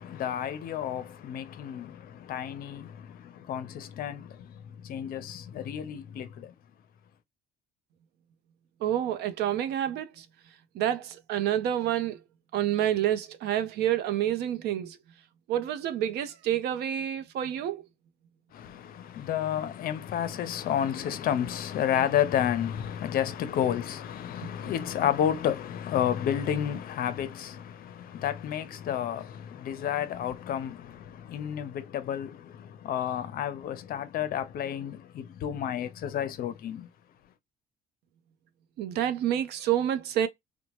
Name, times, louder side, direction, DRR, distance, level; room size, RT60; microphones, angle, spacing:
voice 1, 0.0-6.5 18.5-36.9, left 10 dB, 60° left, 0.6 m, -31 dB
voice 2, 8.8-10.3 10.7-12.2 12.5-15.0 15.5-17.8 24.4-24.5 38.8-40.3, right 11 dB, 75° right, 0.6 m, -28 dB
2.8 x 2.1 x 2.9 m
cardioid pair, 110°, 17 cm